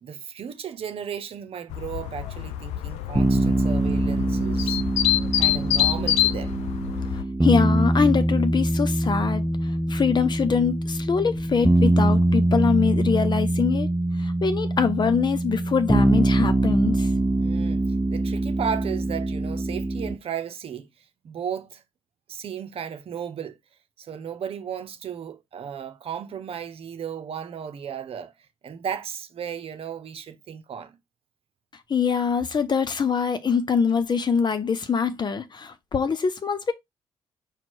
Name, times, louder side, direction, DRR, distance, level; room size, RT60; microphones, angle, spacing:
voice 1, 0.0-4.8 5.3-6.6 17.4-17.8 18.1-20.9 21.2-21.8 22.3-23.6 24.0-28.3 28.6-31.0, right 8 dB, 60° right, 0.9 m, -34 dB
sound 1, 1.7-7.2, left 12 dB, 85° left, 0.5 m, -26 dB
sound 2, 3.2-20.2, right 1 dB, 10° right, 0.7 m, -23 dB
voice 2, 7.4-9.4 9.9-13.9 14.2-17.1 31.9-36.7, left 6 dB, 40° left, 0.9 m, -23 dB
4.4 x 2.4 x 4.6 m
supercardioid pair, 60°, 11 cm